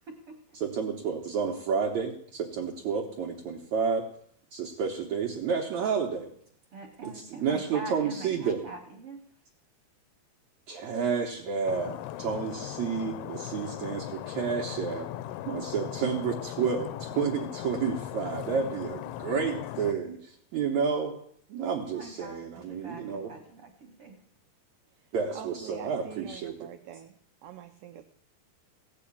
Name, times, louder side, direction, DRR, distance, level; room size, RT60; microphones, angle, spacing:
voice 1, 0.5-4.1 4.5-6.3 7.0-8.7 10.7-15.1 15.5-21.2 21.5-23.3 25.1-26.6, right 6 dB, 65° right, 1 dB, 1.9 m, -30 dB
voice 2, 6.7-9.2 21.9-22.4 22.8-24.2, right 3 dB, 50° right, 2 dB, 1.9 m, -44 dB
Stream, 11.7-19.9, left 13 dB, 90° left, 2.6 m, -38 dB
voice 3, 25.3-27.1 27.4-28.0, right 10 dB, 85° right, 7 dB, 1.8 m, -44 dB
16.0 x 5.6 x 8.5 m, 0.63 s
omnidirectional pair, 4.5 m